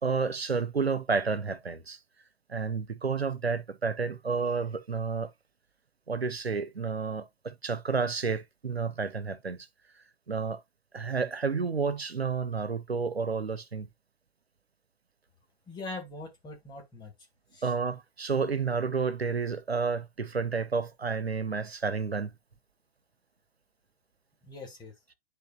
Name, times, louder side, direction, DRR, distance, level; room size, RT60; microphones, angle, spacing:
voice 1, 0.0-2.0 2.5-5.3 6.1-9.7 10.3-10.6 10.9-13.9 17.6-22.3, right 5 dB, 80° right, 1.2 m, -30 dB
voice 2, 15.7-17.1 17.5-17.7 24.4-24.9, left 3 dB, 15° left, 2.4 m, -42 dB
10.5 x 4.7 x 2.4 m
figure-of-eight pair, 115°, 31 cm